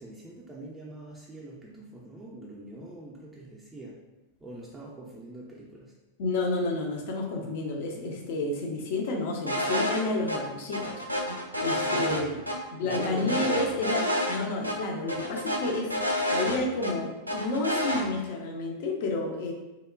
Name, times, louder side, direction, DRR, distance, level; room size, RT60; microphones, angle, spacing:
voice 1, 0.0-4.0 4.4-5.9 11.9-13.9, right 2 dB, 10° right, -6 dB, 0.4 m, -43 dB
voice 2, 6.2-11.0 11.6-12.4 12.7-16.0 16.3-19.5, left 2 dB, 50° left, 1 dB, 0.5 m, -30 dB
sound 1, 9.5-10.0 10.3-10.4 10.7-12.6 12.9-14.4 14.6-14.8 15.1-16.9 17.3-18.0, equal, 90° right, 0.3 m, -29 dB
2.8 x 2.1 x 2.4 m, 1.0 s
figure-of-eight pair, 90°, 0 cm